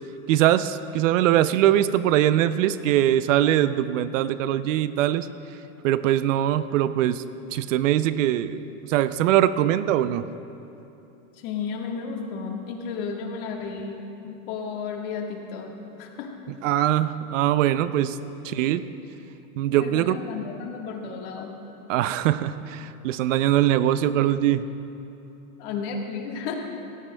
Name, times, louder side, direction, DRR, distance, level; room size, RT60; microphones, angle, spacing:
voice 1, 0.3-5.3 5.8-7.2 7.5-10.3 16.6-18.2 18.4-18.8 19.6-20.2 21.9-24.7, right 12 dB, 65° right, 14 dB, 0.5 m, -22 dB
voice 2, 11.3-16.3 18.4-18.7 19.8-21.6 25.6-26.6, left 5 dB, 45° left, 1 dB, 1.5 m, -33 dB
18.5 x 16.0 x 2.2 m, 2.9 s
supercardioid pair, 165°, 42 cm